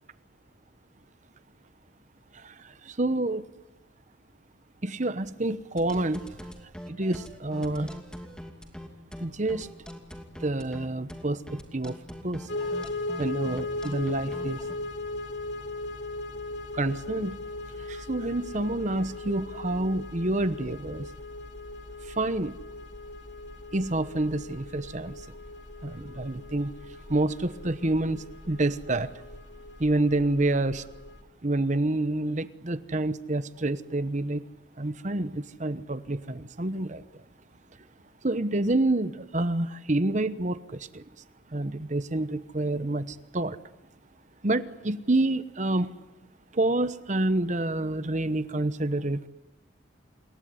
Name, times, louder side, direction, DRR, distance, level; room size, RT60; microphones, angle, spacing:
voice 1, 2.3-3.4 4.8-6.2 6.9-8.0 9.2-9.7 10.4-12.0 12.2-12.7 13.2-14.6 16.7-17.4 17.9-21.1 22.0-22.5 23.7-25.1 25.8-26.7 27.1-29.1 29.8-30.9 31.4-34.4 34.8-37.0 38.2-41.0 41.5-43.6 44.4-45.9 46.5-49.2, right 2 dB, 40° right, 13 dB, 1.0 m, -28 dB
sound 1, 5.8-14.8, equal, 5° left, 2.7 m, -42 dB
sound 2, 12.5-31.2, left 2 dB, 65° left, 2.9 m, -38 dB
27.5 x 21.5 x 9.7 m, 0.97 s
head